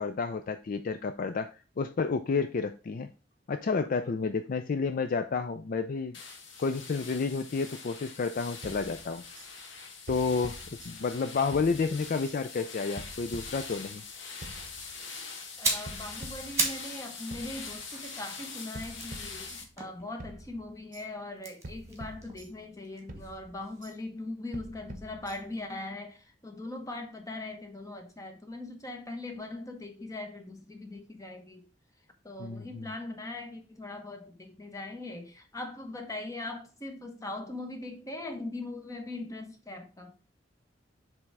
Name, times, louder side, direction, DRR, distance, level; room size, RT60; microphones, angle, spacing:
voice 1, 0.0-3.1 3.5-6.2 6.6-9.2 10.1-10.6 10.9-14.0 32.4-32.9, left 4 dB, 50° left, 0.4 m, -30 dB
sound 1, 6.1-19.6, left 4 dB, 75° left, 1.3 m, -43 dB
sound 2, 8.6-9.5 10.1-11.2 11.5-12.4 13.0-14.1 14.4-15.3 15.9-17.0 17.3-18.2 18.7-19.9 20.2-21.1 21.6-22.8 23.1-24.0 24.5-25.7, right 2 dB, 45° right, 0.8 m, -47 dB
sound 3, 15.4-17.0 17.3-20.5 21.3-23.4 23.6-23.8, right 3 dB, 15° right, 1.7 m, -36 dB
voice 2, 15.6-31.7 32.2-40.1, left 2 dB, 20° left, 1.1 m, -40 dB
7.1 x 3.4 x 4.7 m
head